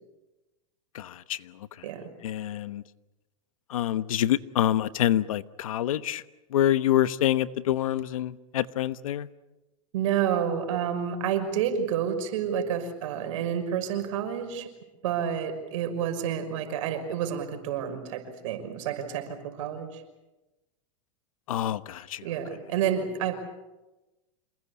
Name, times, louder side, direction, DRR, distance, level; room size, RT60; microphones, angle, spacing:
voice 1, 2.2-2.8 3.7-6.2 6.5-9.3 21.5-22.2, left 12 dB, 85° left, 1.2 m, -26 dB
voice 2, 9.9-14.7 15.0-20.0 22.2-23.3, right 8 dB, 65° right, 5.9 m, -29 dB
28.0 x 20.5 x 8.5 m
supercardioid pair, 140°, 17 cm